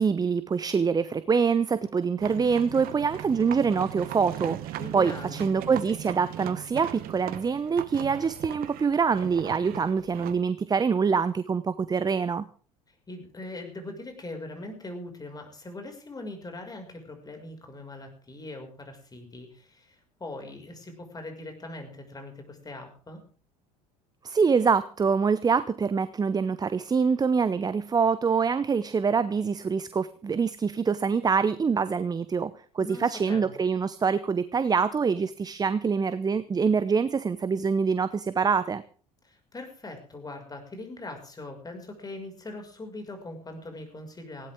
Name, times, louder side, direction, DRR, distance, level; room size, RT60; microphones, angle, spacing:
voice 1, 0.0-12.5 24.2-38.8, right 5 dB, 20° right, 15 dB, 0.8 m, -25 dB
sound 1, 2.2-10.4, right 14 dB, 50° right, 1.1 m, -39 dB
voice 2, 4.8-5.4 12.9-23.2 32.8-33.5 39.2-44.5, left 2 dB, 20° left, 4 dB, 6.0 m, -41 dB
19.0 x 16.5 x 3.7 m, 0.41 s
figure-of-eight pair, 65°, 20 cm